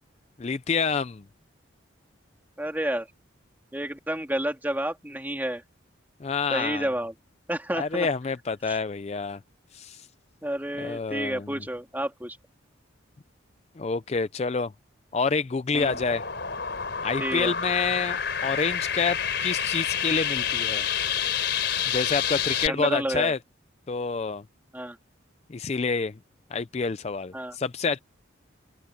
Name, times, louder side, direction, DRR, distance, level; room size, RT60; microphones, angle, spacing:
voice 1, 0.4-1.2 6.2-6.9 7.7-9.4 9.7-10.1 10.8-11.5 13.8-14.7 15.1-16.2 17.0-20.9 21.9-23.4 23.9-24.4 25.5-26.1 26.5-28.0, left 4 dB, 30° left, 0.4 m, -28 dB
voice 2, 2.6-3.1 3.7-5.6 6.5-7.1 7.5-8.1 8.7-8.8 10.4-12.4 15.7-16.0 17.2-17.5 22.6-23.3 24.7-25.0 27.3-27.6, right 1 dB, 10° right, 2.7 m, -30 dB
sound 1, 15.7-22.7, left 8 dB, 60° left, 4.3 m, -28 dB
open air
head